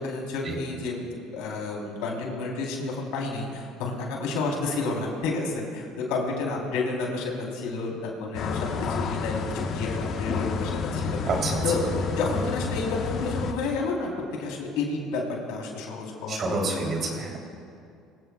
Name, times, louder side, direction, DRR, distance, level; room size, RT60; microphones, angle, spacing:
voice 1, 0.0-8.7 9.0-11.2 11.6-11.9 12.2-14.1 14.4-16.9, left 3 dB, 80° left, -1 dB, 3.9 m, -30 dB
sound 1, 8.3-13.5, left 5 dB, 60° left, 1.3 m, -30 dB
voice 2, 11.3-11.6 16.3-17.4, right 3 dB, 45° right, 0 dB, 3.5 m, -28 dB
24.0 x 16.0 x 2.4 m, 2.3 s
supercardioid pair, 95°, 0 cm